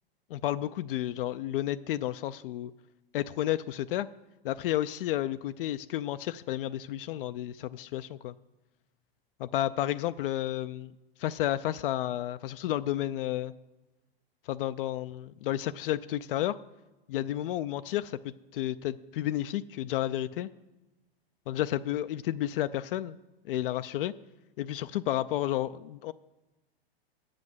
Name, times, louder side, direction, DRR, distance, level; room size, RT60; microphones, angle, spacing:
voice 1, 0.3-2.7 3.1-4.1 4.4-8.3 9.4-10.9 11.2-13.5 14.5-16.6 17.1-20.5 21.5-23.2 23.4-24.1 24.6-26.1, left 13 dB, 60° left, 12 dB, 0.4 m, -31 dB
7.6 x 7.3 x 7.9 m, 1.1 s
hypercardioid pair, 115°, 31 cm